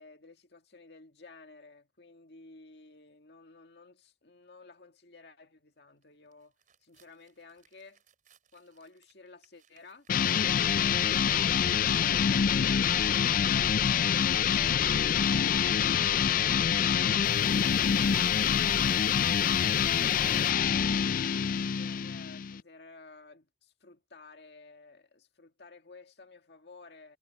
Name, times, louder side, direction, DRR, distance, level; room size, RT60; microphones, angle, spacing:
voice 1, 0.0-6.5 6.8-8.0 8.5-12.7 13.0-21.0 21.8-27.2, left 3 dB, 65° left, 2.0 m, -53 dB
sound 1, 6.3-6.4 6.6-12.1 12.4-20.5, right 11 dB, 50° right, 4.8 m, -54 dB
sound 2, 10.1-22.6, left 8 dB, 50° left, 0.3 m, -26 dB
sound 3, 10.4-21.1, right 1 dB, 70° right, 1.3 m, -45 dB
head